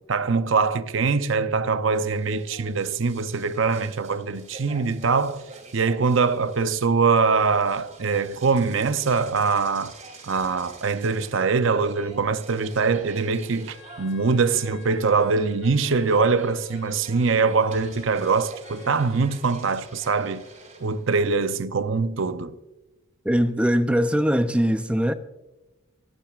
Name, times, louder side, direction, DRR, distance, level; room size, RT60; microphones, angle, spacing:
voice 1, 0.0-5.4 5.7-9.9 10.2-20.4 20.8-22.6, right 4 dB, 65° right, 0.6 m, -23 dB
sound 1, 1.9-21.2, right 2 dB, 35° right, 2.9 m, -46 dB
sound 2, 13.7-20.5, left 4 dB, 60° left, 4.1 m, -51 dB
voice 2, 23.2-25.1, equal, 5° right, 0.5 m, -21 dB
22.0 x 9.0 x 2.4 m
head